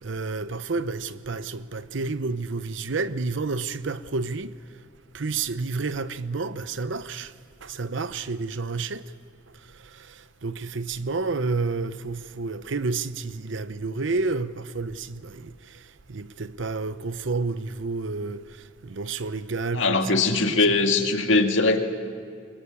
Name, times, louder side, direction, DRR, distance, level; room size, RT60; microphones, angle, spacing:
voice 1, 0.0-4.5 5.1-7.3 7.6-9.1 9.8-20.0 20.3-20.8, right 3 dB, 70° right, 0.8 m, -30 dB
voice 2, 19.7-21.8, left 3 dB, 75° left, 2.0 m, -21 dB
23.5 x 21.0 x 8.7 m
head